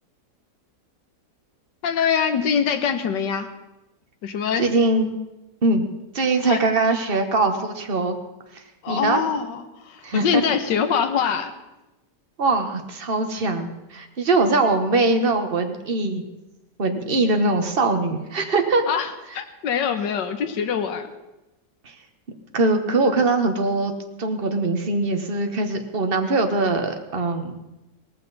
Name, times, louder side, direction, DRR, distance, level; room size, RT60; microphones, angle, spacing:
voice 1, 1.8-3.5 4.2-4.7 6.4-6.6 8.8-11.5 18.9-21.1, left 7 dB, 80° left, 8 dB, 1.7 m, -24 dB
voice 2, 4.6-5.0 5.6-5.9 6.1-8.2 8.9-9.2 10.0-10.4 12.4-16.2 16.8-18.8 22.5-27.6, right 3 dB, 35° right, 5 dB, 1.4 m, -22 dB
18.0 x 15.0 x 4.1 m, 1.0 s
omnidirectional pair, 1.9 m